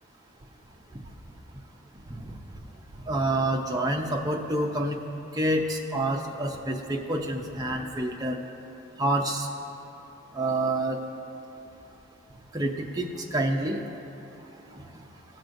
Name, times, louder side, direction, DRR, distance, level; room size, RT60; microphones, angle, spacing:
voice 1, 3.1-5.0 5.3-8.4 9.0-9.5 10.3-11.0 12.5-13.8 14.7-15.0, right 1 dB, 15° right, 2 dB, 0.5 m, -28 dB
15.5 x 6.0 x 2.6 m, 3.0 s
head